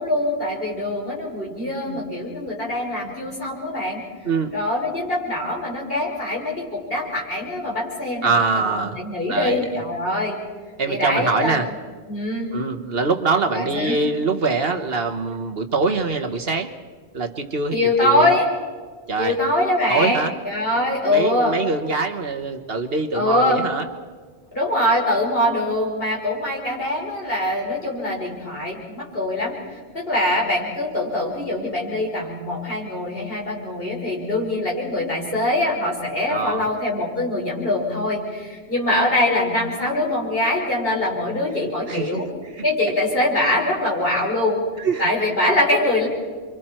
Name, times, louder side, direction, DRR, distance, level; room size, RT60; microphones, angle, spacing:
voice 1, 0.0-4.0 4.5-10.4 10.9-11.7 12.1-12.5 13.5-14.0 17.7-18.4 19.2-21.6 23.1-23.7 24.5-29.6 29.9-42.3 42.6-44.6 45.0-46.1, left 1 dB, 55° left, -3 dB, 5.6 m, -23 dB
voice 2, 1.8-2.3 4.2-4.5 8.2-9.7 10.8-11.7 12.5-16.7 17.1-18.4 19.1-19.4 19.9-20.3 20.8-23.8 36.3-36.7 41.9-42.6 44.8-45.0, right 4 dB, 60° right, 6 dB, 1.5 m, -24 dB
29.5 x 24.5 x 4.5 m, 1.5 s
omnidirectional pair, 1.1 m